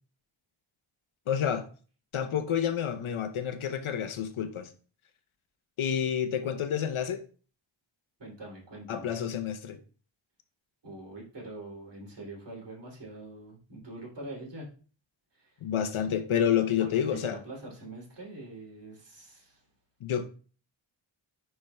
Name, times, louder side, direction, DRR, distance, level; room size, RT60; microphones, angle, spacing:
voice 1, 1.3-1.7 2.1-4.7 5.8-7.2 8.9-9.8 15.6-17.4 20.0-20.3, left 8 dB, 80° left, 0.8 m, -29 dB
voice 2, 8.2-9.1 10.8-14.7 15.3-15.6 16.8-19.6, right 2 dB, 60° right, 2.9 m, -44 dB
10.0 x 4.5 x 2.2 m
wide cardioid pair, 120°, 48 cm